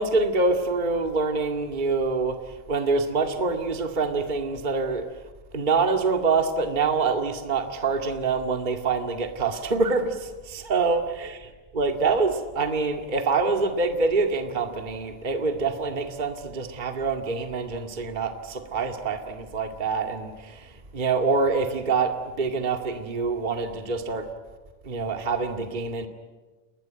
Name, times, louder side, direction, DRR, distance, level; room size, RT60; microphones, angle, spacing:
voice 1, 0.0-2.4 2.7-5.1 5.5-11.4 11.7-24.3 24.8-26.1, right 4 dB, 20° right, 5 dB, 1.6 m, -25 dB
29.0 x 20.5 x 9.4 m, 1.3 s
omnidirectional pair, 3.4 m